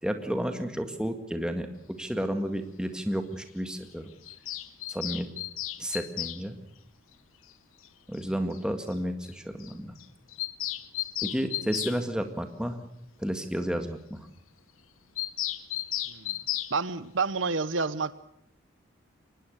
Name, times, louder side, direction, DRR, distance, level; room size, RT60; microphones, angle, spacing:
voice 1, 0.0-1.7 2.0-4.1 4.9-5.3 5.8-6.6 8.1-9.9 11.2-12.8 13.2-14.3, equal, 5° right, 6 dB, 1.9 m, -31 dB
Bird vocalization bird call bird song, 4.2-6.4 7.8-7.9 8.2-8.3 8.5-8.6 8.9-9.0 9.2-9.3 9.6-9.7 10.0-12.0 15.2-16.7, left 14 dB, 90° left, 1.1 m, -34 dB
voice 2, 16.7-18.2, right 4 dB, 70° right, 15 dB, 0.9 m, -29 dB
24.0 x 20.0 x 6.6 m, 0.78 s
head